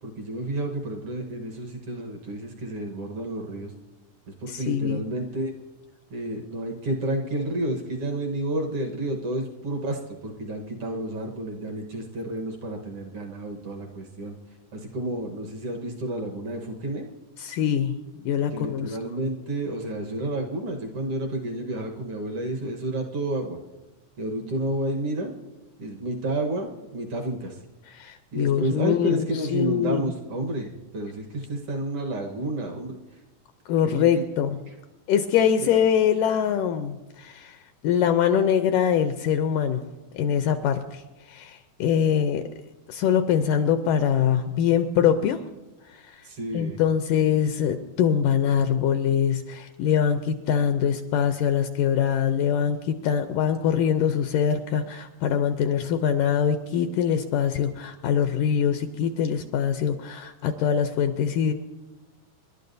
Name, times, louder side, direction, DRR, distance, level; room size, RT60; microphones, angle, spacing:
voice 1, 0.0-3.7 4.3-5.5 6.1-14.3 14.7-17.1 18.5-23.6 24.2-25.3 25.8-27.6 28.3-33.0 33.9-34.1 34.7-34.8 35.6-35.7 46.2-46.8, right 1 dB, 60° right, 2 dB, 1.6 m, -30 dB
voice 2, 4.5-5.0 17.4-18.0 18.2-19.0 27.9-30.1 33.7-34.6 35.1-37.6 37.8-39.8 40.1-42.5 42.9-45.4 45.9-46.2 46.5-61.5, left 8 dB, 80° left, 8 dB, 2.0 m, -23 dB
28.0 x 11.5 x 2.6 m, 1.1 s
omnidirectional pair, 4.1 m